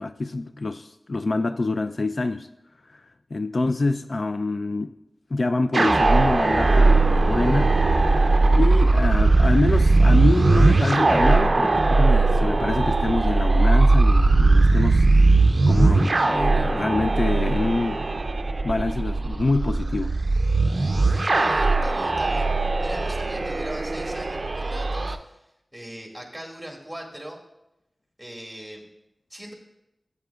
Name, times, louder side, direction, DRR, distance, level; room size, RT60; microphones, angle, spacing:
voice 1, 0.0-2.5 3.3-4.9 5.3-7.8 8.5-15.1 15.7-18.0 18.6-20.1, left 3 dB, 60° left, 0.3 m, -26 dB
sound 1, 5.7-25.2, right 3 dB, 55° right, 0.5 m, -19 dB
voice 2, 21.4-22.5 22.8-25.3 25.7-27.4 28.2-28.8 29.3-29.5, right 1 dB, 5° right, 1.9 m, -39 dB
14.0 x 8.0 x 2.3 m
wide cardioid pair, 75°, 0 cm